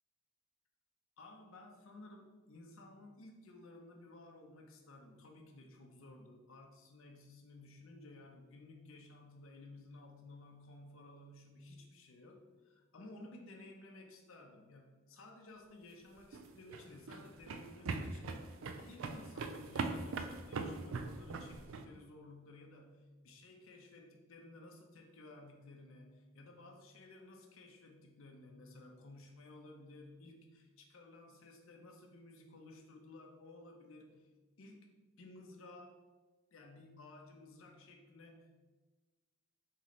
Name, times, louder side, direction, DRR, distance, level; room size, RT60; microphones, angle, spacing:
voice 1, 1.2-34.3 34.6-34.9 35.2-36.0 36.5-38.5, left 2 dB, 70° left, 1 dB, 0.7 m, -56 dB
sound 1, 16.2-21.8, right 4 dB, 70° right, 0.4 m, -41 dB
4.2 x 3.1 x 4.0 m, 1.2 s
head